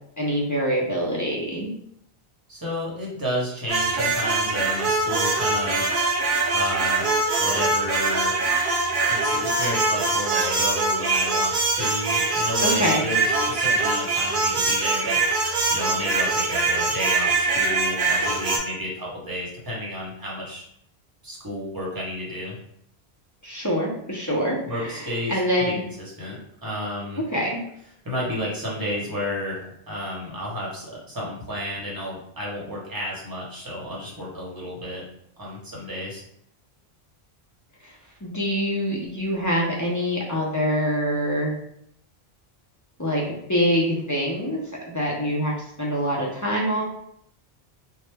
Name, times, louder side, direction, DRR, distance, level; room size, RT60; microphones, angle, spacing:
voice 1, 0.2-1.7 12.6-13.0 23.4-25.8 27.3-27.6 37.8-37.9 38.2-41.5 43.0-44.6 44.9-45.5 45.8-46.8, equal, 30° left, -4 dB, 0.3 m, -25 dB
voice 2, 2.5-5.9 6.5-7.1 7.4-8.5 9.1-15.4 15.7-20.6 21.2-22.6 24.6-25.7 26.0-27.2 28.0-35.0 35.4-36.2, equal, 20° right, -5 dB, 0.8 m, -31 dB
sound 1, 3.7-18.6, right 3 dB, 55° right, 0.7 m, -23 dB
3.0 x 2.1 x 3.2 m, 0.72 s
omnidirectional pair, 1.1 m